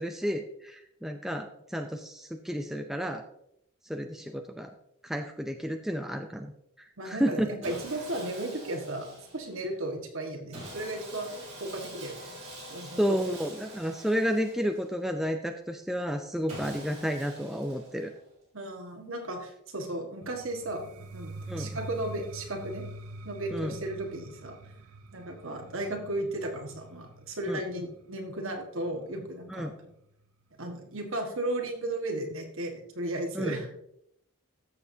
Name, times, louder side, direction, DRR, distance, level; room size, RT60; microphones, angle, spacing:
voice 1, 0.0-3.2 3.8-4.7 5.0-6.5 6.8-7.5 13.0-18.1 21.5-21.8 23.5-23.7 27.5-27.6 29.5-29.7 33.3-33.6, equal, ahead, 4 dB, 0.4 m, -31 dB
voice 2, 7.0-12.1 12.7-13.2 18.5-22.9 23.2-24.6 25.1-29.9 30.6-33.7, right 1 dB, 65° right, 2 dB, 1.7 m, -35 dB
Sawing, 7.6-9.7 10.5-15.1 16.5-18.3, right 1 dB, 30° right, 3.8 m, -45 dB
sound 1, 20.2-30.0, right 2 dB, 80° right, 0.6 m, -45 dB
13.5 x 7.0 x 2.8 m, 0.75 s
head